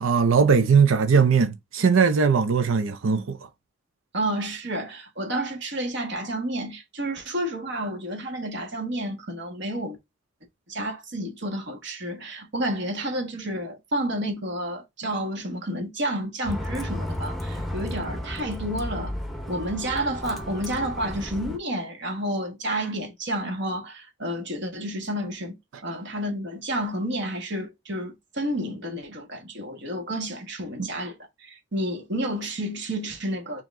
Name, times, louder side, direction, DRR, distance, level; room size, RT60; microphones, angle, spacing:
voice 1, 0.0-3.4 30.8-30.9, right 5 dB, 85° right, 0.6 m, -20 dB
voice 2, 4.1-10.0 10.7-19.1 19.5-33.6, right 1 dB, 60° right, 1.4 m, -30 dB
Bus, 16.4-21.6, left 1 dB, ahead, 0.8 m, -33 dB
4.5 x 2.9 x 3.6 m
head